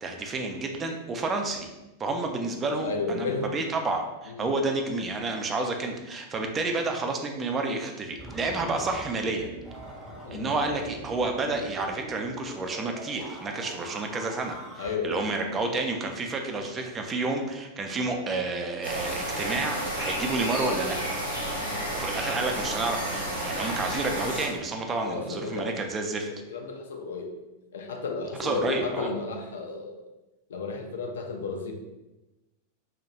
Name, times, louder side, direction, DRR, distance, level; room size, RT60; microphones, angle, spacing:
voice 1, 0.0-1.7 2.0-9.5 10.3-21.0 21.7-26.3 28.4-29.1, right 3 dB, 20° right, 3 dB, 0.3 m, -30 dB
voice 2, 2.8-3.5 4.3-4.5 10.2-10.5 14.8-15.7 21.6-21.8 25.0-25.7 26.3-27.3 27.7-30.0 30.5-31.7, left 3 dB, 65° left, 3 dB, 0.3 m, -33 dB
sound 1, 8.2-14.9, right 1 dB, 5° right, 0.7 m, -43 dB
sound 2, 18.8-24.5, right 1 dB, 80° right, 0.7 m, -31 dB
2.2 x 2.1 x 2.7 m, 1.0 s
figure-of-eight pair, 90°, 0 cm